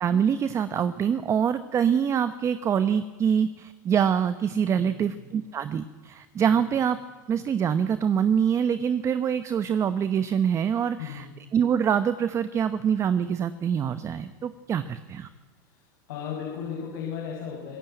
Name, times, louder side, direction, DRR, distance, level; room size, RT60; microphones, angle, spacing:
voice 1, 0.0-7.0 7.3-11.3 11.5-15.3, right 8 dB, 30° right, 12 dB, 1.0 m, -25 dB
voice 2, 11.0-11.3 15.7-17.8, left 7 dB, 75° left, -3 dB, 6.4 m, -36 dB
26.5 x 16.5 x 9.2 m, 1.4 s
supercardioid pair, 115°, 10 cm